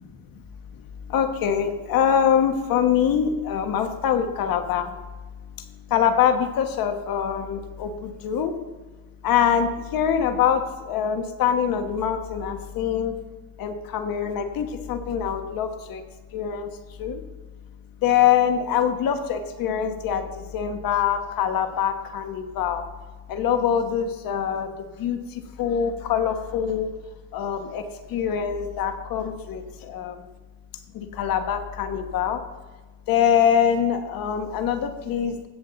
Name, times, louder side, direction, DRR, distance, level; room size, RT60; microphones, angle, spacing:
voice 1, 1.1-4.9 5.6-8.5 9.2-13.2 13.6-16.0 16.3-16.7 17.0-17.2 18.0-22.9 23.3-24.7 25.0-26.9 27.3-30.2 30.9-32.4 33.1-35.5, left 8 dB, 70° left, 7 dB, 1.3 m, -24 dB
16.5 x 7.3 x 4.0 m, 1.3 s
cardioid pair, 150°, 36 cm